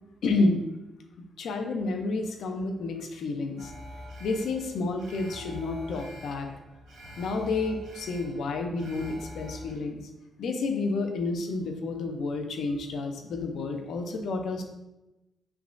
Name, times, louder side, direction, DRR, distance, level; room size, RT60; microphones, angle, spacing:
voice 1, 0.2-0.6 1.4-3.7 4.2-6.5 7.2-10.0 10.4-14.6, left 3 dB, 75° left, 4 dB, 0.4 m, -30 dB
Alarm, 3.6-9.7, left 1 dB, 90° right, 0.8 m, -45 dB
3.4 x 3.0 x 2.4 m, 0.97 s
cardioid pair, 70°, 0 cm